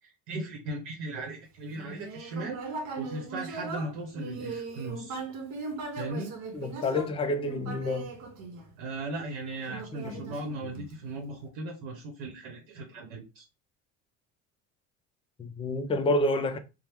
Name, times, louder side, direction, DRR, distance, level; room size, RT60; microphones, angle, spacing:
voice 1, 0.0-5.2 6.0-6.3 8.8-13.5, right 2 dB, 80° right, 0.8 m, -37 dB
Human voice, 1.7-9.1 9.7-11.1, right 3 dB, 55° right, 0.9 m, -39 dB
voice 2, 6.5-8.1 10.0-10.4 15.4-16.6, left 1 dB, 15° left, 0.3 m, -29 dB
2.8 x 2.0 x 3.3 m
supercardioid pair, 110°, 34 cm